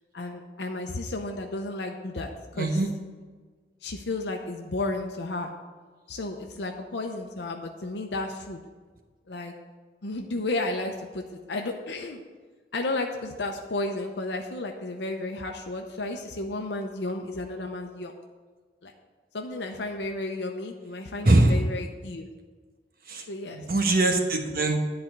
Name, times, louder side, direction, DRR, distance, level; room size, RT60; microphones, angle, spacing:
voice 1, 0.1-2.8 3.8-5.5 6.1-8.6 9.3-9.5 10.0-12.2 12.7-18.1 18.8-18.9 19.3-22.3 23.3-23.6, left 2 dB, 75° left, 3 dB, 0.7 m, -33 dB
voice 2, 2.6-2.9 21.2-21.6 23.1-23.2 23.5-24.8, right 2 dB, 55° right, 3 dB, 1.2 m, -22 dB
11.0 x 4.3 x 7.9 m, 1.4 s
head